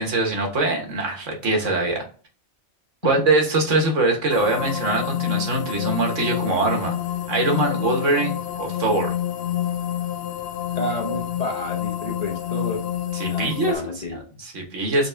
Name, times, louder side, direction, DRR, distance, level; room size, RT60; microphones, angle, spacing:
voice 1, 0.0-2.0 3.0-7.0 7.3-9.1 13.1-13.7 14.1-15.1, right 2 dB, 85° right, 2 dB, 1.6 m, -23 dB
sound 1, 4.3-13.8, left 11 dB, 60° left, 0.8 m, -28 dB
voice 2, 10.7-12.9 13.3-14.2, left 1 dB, 35° left, 0 dB, 0.9 m, -30 dB
4.1 x 3.8 x 3.3 m, 0.39 s
omnidirectional pair, 1.2 m